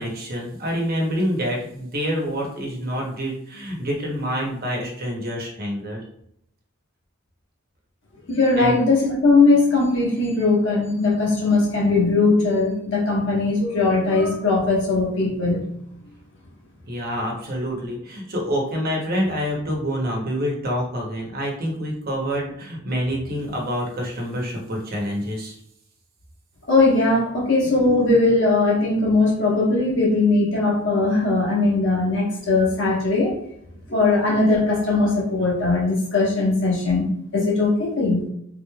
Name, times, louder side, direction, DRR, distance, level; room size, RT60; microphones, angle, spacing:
voice 1, 0.0-6.0 8.6-8.8 16.9-25.6, equal, 50° right, -1 dB, 1.0 m, -27 dB
voice 2, 8.3-15.6 26.7-33.3 33.9-37.1 37.3-38.2, left 3 dB, 65° left, -4 dB, 1.3 m, -19 dB
3.8 x 3.1 x 2.3 m, 0.72 s
head